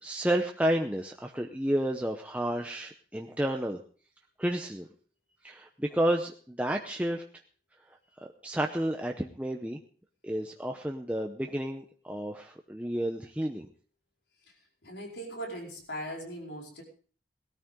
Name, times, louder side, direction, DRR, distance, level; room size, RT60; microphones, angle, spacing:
voice 1, 0.0-3.8 4.4-4.9 5.4-7.2 8.2-9.8 10.2-13.7, right 1 dB, 10° right, 2 dB, 0.7 m, -31 dB
voice 2, 14.8-16.8, right 1 dB, 80° left, 0 dB, 4.8 m, -39 dB
18.5 x 13.0 x 3.7 m, 0.43 s
head